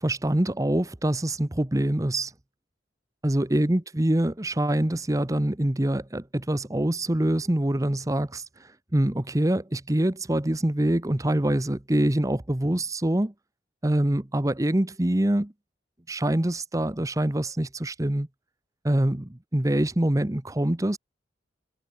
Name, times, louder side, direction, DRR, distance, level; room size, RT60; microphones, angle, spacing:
voice 1, 0.0-2.3 3.2-8.4 8.9-13.3 13.8-15.5 16.1-18.3 18.8-21.0, right 1 dB, 20° right, 0.9 m, -25 dB
head